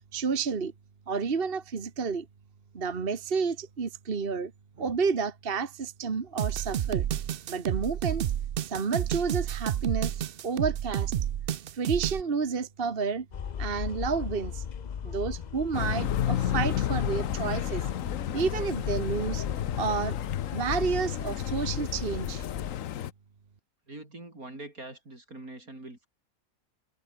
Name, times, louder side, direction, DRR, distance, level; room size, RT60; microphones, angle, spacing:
voice 1, 0.1-0.7 1.1-2.3 2.7-4.5 4.8-7.1 7.5-8.2 8.6-11.1 11.7-13.3 13.6-14.6 15.0-17.8 18.3-19.5 19.7-20.2 20.5-22.4, right 5 dB, 40° right, 1.6 m, -30 dB
sound 1, 6.4-12.2, right 10 dB, 60° right, 0.6 m, -30 dB
sound 2, 13.3-22.7, left 7 dB, 45° left, 0.6 m, -36 dB
sound 3, 15.7-23.1, left 11 dB, 70° left, 1.2 m, -32 dB
voice 2, 23.9-26.1, right 2 dB, 80° right, 7.4 m, -43 dB
omnidirectional pair, 1.5 m